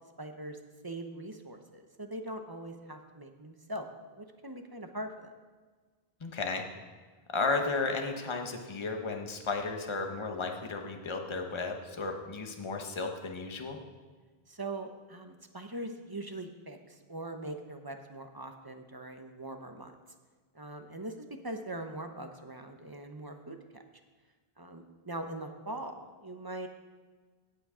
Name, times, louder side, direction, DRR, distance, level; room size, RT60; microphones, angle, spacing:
voice 1, 0.2-0.6 0.8-3.9 4.2-5.3 14.5-19.9 20.5-23.8 24.6-26.7, right 1 dB, 25° right, 5 dB, 0.8 m, -41 dB
voice 2, 6.2-6.6 7.3-13.8, left 3 dB, 30° left, 3 dB, 1.0 m, -34 dB
17.0 x 6.0 x 5.0 m, 1.4 s
omnidirectional pair, 1.1 m